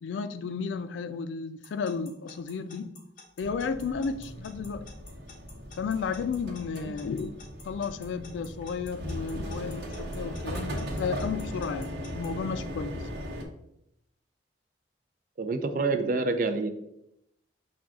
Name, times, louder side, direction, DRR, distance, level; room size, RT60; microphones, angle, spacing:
voice 1, 0.0-2.9 3.4-4.9 5.8-7.3 7.6-12.9, left 5 dB, 90° left, 0.3 m, -33 dB
Alarm / Clock, 1.6-12.3, left 4 dB, 50° left, 1.0 m, -50 dB
sound 1, 3.4-13.4, equal, 75° right, 1.0 m, -38 dB
voice 2, 15.4-16.7, right 3 dB, 50° right, 0.4 m, -27 dB
6.1 x 2.3 x 3.5 m
head